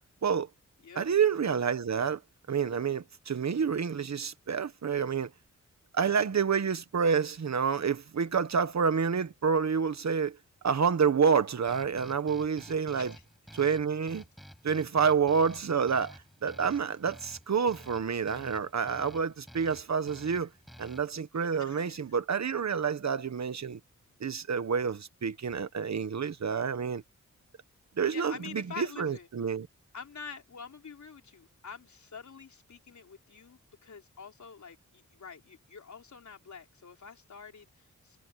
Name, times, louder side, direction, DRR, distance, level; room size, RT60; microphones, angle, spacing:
voice 1, 1.0-2.2 2.5-5.3 5.9-10.4 10.6-13.1 13.5-14.2 14.6-20.5 20.8-23.8 24.2-27.0 28.0-29.7, right 6 dB, 60° right, 1.4 m, -28 dB
sound 1, 11.7-21.2, equal, ahead, 5.6 m, -52 dB
voice 2, 21.6-22.0 28.1-29.3 29.9-38.2, left 6 dB, 65° left, 3.9 m, -46 dB
wide cardioid pair, 115°, 31 cm